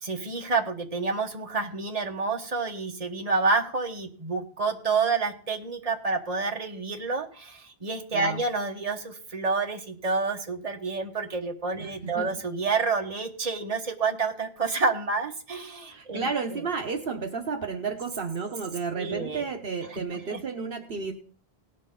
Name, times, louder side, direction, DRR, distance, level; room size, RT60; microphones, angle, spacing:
voice 1, 0.0-16.3 19.0-19.5 19.9-20.4, right 4 dB, 35° right, 3 dB, 1.3 m, -29 dB
voice 2, 11.8-12.4 15.9-21.1, right 5 dB, 60° right, 4 dB, 1.2 m, -32 dB
18.5 x 6.5 x 3.7 m, 0.43 s
omnidirectional pair, 1.1 m